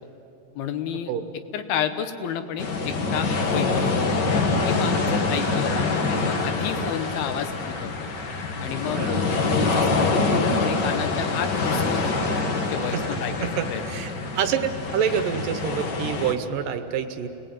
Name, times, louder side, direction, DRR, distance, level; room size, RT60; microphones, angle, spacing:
voice 1, 0.6-1.1 1.5-4.1 4.7-5.7 6.1-8.1 8.6-12.1 12.7-14.0, left 8 dB, 85° left, 9 dB, 3.1 m, -31 dB
sound 1, 2.6-16.3, left 3 dB, 50° left, 1.3 m, -25 dB
voice 2, 12.9-17.3, right 8 dB, 70° right, 9 dB, 2.5 m, -27 dB
29.5 x 20.0 x 9.0 m, 3.0 s
omnidirectional pair, 4.3 m